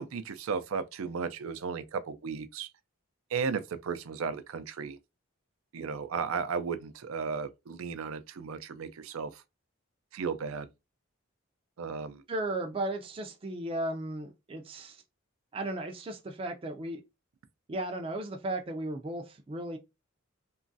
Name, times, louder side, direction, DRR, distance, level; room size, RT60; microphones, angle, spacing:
voice 1, 0.0-2.7 3.3-5.0 5.7-9.4 10.1-10.7 11.8-12.2, right 5 dB, 90° right, 0.4 m, -35 dB
voice 2, 12.3-15.0 15.5-17.0 17.7-19.8, right 1 dB, 25° right, 0.4 m, -35 dB
3.0 x 2.3 x 2.6 m
head